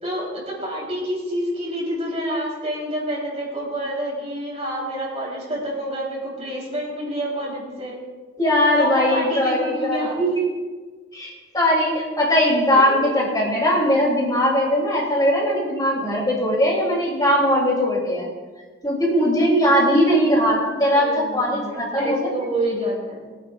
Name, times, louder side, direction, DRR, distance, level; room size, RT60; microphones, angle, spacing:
voice 1, 0.0-8.0 8.7-10.2 12.7-13.1 20.9-23.3, equal, 35° right, -3 dB, 3.6 m, -28 dB
voice 2, 8.4-10.4 11.1-18.3 18.8-22.3, equal, 20° left, -3 dB, 2.8 m, -20 dB
22.0 x 9.2 x 2.4 m, 1.4 s
head